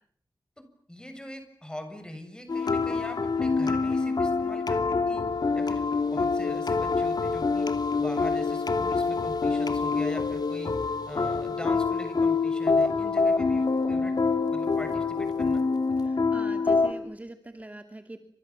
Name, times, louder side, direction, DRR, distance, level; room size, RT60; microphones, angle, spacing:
voice 1, 0.6-5.3 5.5-7.7 8.0-10.8 11.1-14.1 14.5-15.6, left 1 dB, 10° left, 7 dB, 7.2 m, -42 dB
sound 1, 2.5-16.9, left 4 dB, 60° left, 2.9 m, -26 dB
voice 2, 16.0-18.2, right 1 dB, 20° right, 7 dB, 2.5 m, -43 dB
30.0 x 27.0 x 7.3 m, 0.62 s
wide cardioid pair, 80°, 8 cm